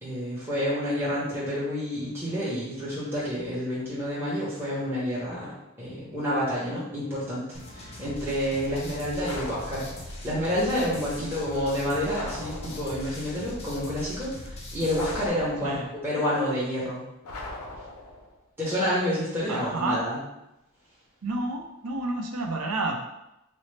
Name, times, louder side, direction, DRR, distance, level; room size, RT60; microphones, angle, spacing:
voice 1, 0.0-7.4 7.7-15.8 16.0-17.0 18.6-20.2, equal, 10° right, -9 dB, 0.8 m, -29 dB
sound 1, 7.5-15.3, left 1 dB, 30° left, 0.5 m, -40 dB
sound 2, 9.2-10.3 12.1-13.2 14.9-16.1 17.2-18.4, left 2 dB, 85° left, 0.6 m, -39 dB
voice 2, 19.5-20.1 21.2-23.0, right 2 dB, 85° right, 3 dB, 0.6 m, -30 dB
4.1 x 2.0 x 3.2 m, 0.89 s
head